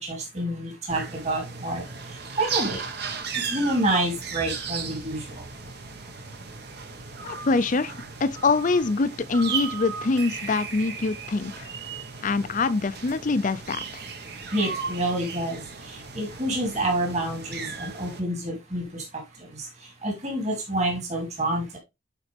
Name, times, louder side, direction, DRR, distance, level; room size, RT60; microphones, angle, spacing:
voice 1, 0.0-2.9 3.3-5.5 14.5-21.8, right 1 dB, 35° right, 2.7 m, -28 dB
sound 1, 0.9-18.2, right 5 dB, 55° right, 1.2 m, -36 dB
voice 2, 7.2-11.7 12.2-14.0, left 3 dB, 40° left, 0.5 m, -25 dB
9.1 x 4.1 x 3.3 m
head